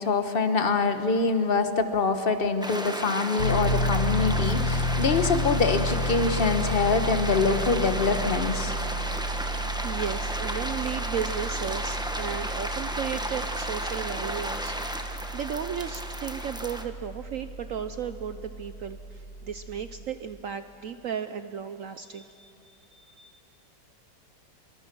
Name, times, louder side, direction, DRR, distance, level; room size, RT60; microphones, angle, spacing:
voice 1, 0.0-8.7, left 4 dB, 35° left, 8 dB, 1.1 m, -25 dB
sound 1, 2.6-16.8, equal, 5° right, 0.7 m, -34 dB
Piano, 3.4-20.1, left 1 dB, 65° left, 6.4 m, -32 dB
voice 2, 9.5-23.4, right 8 dB, 65° right, 10 dB, 0.8 m, -35 dB
25.5 x 23.0 x 6.1 m, 2.8 s
omnidirectional pair, 2.0 m